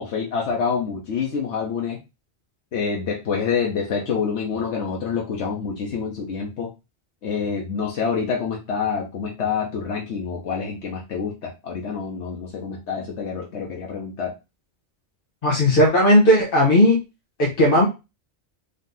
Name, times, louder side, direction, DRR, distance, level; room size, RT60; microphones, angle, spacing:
voice 1, 0.0-2.0 2.7-6.7 7.2-14.3, left 6 dB, 85° left, -1 dB, 1.2 m, -27 dB
voice 2, 15.4-17.0 17.4-17.9, left 1 dB, 55° left, -3 dB, 1.3 m, -16 dB
4.0 x 2.7 x 3.8 m, 0.26 s
omnidirectional pair, 1.1 m